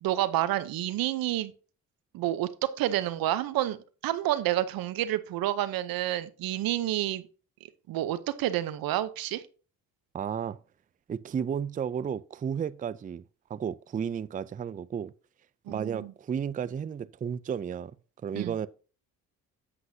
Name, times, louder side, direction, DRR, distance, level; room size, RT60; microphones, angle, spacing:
voice 1, 0.0-1.5 2.1-2.5 2.8-3.8 4.0-7.2 7.9-9.4 15.7-16.1 18.3-18.5, right 14 dB, 85° right, 0.8 m, -29 dB
voice 2, 10.1-10.6 11.1-13.2 13.5-15.1 15.7-17.9 18.2-18.7, right 7 dB, 25° right, 0.4 m, -33 dB
7.8 x 7.8 x 2.7 m
cardioid pair, 75°, 35 cm